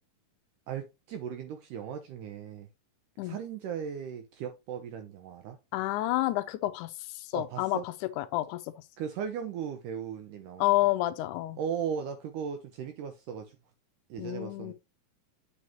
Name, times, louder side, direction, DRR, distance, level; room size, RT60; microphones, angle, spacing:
voice 1, 0.7-2.7 3.2-5.6 7.3-7.9 9.0-10.7 11.6-13.6 14.1-14.7, right 8 dB, 75° right, 2.1 m, -37 dB
voice 2, 5.7-8.8 10.6-11.6 14.2-14.7, left 16 dB, 80° left, 1.8 m, -30 dB
8.2 x 5.5 x 3.0 m
omnidirectional pair, 4.1 m